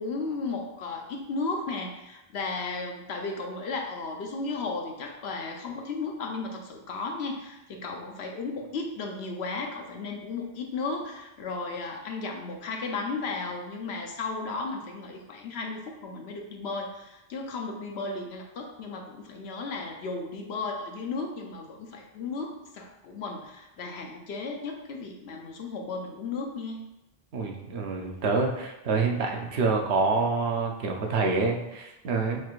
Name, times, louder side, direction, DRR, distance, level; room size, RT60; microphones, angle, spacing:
voice 1, 0.0-26.8, left 3 dB, 85° left, 2 dB, 1.0 m, -34 dB
voice 2, 27.3-32.4, right 4 dB, 90° right, 1 dB, 1.0 m, -27 dB
4.6 x 2.4 x 4.5 m, 0.97 s
omnidirectional pair, 1.0 m